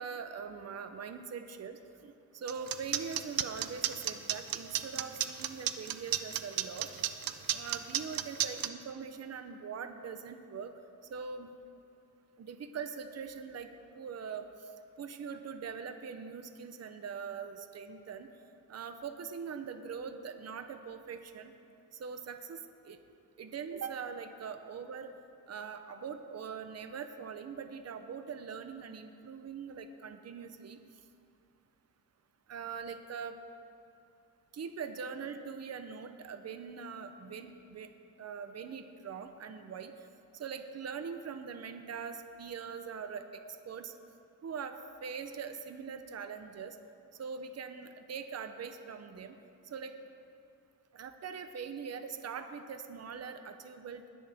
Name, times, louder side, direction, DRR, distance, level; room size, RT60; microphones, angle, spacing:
voice 1, 0.0-6.9 7.5-10.7 11.1-11.5 12.4-13.7 13.9-14.7 15.0-18.3 18.7-21.5 22.0-23.0 23.4-25.1 25.5-30.8 32.5-33.4 34.5-37.9 38.2-40.1 40.3-43.9 44.4-46.8 47.2-49.4 49.6-49.9 50.9-54.1, right 6 dB, 45° right, 8 dB, 0.7 m, -42 dB
sound 1, 2.5-8.7, right 11 dB, 85° right, 0.6 m, -32 dB
19.5 x 10.5 x 3.5 m, 2.6 s
wide cardioid pair, 130°, 34 cm